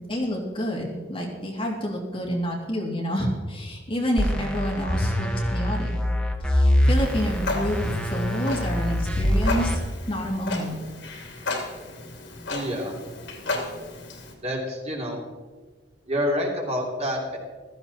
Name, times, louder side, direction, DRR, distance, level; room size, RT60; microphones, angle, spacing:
voice 1, 0.1-5.9 6.4-9.8 10.1-10.7, equal, 30° left, -2 dB, 2.9 m, -28 dB
sound 1, 4.2-9.8, equal, 5° left, 1.4 m, -24 dB
Clock, 6.9-14.3, left 3 dB, 75° left, 2.7 m, -34 dB
voice 2, 12.5-12.9 14.4-15.2 16.1-17.4, equal, 35° right, -1 dB, 3.1 m, -28 dB
15.5 x 14.0 x 4.2 m, 1.3 s
head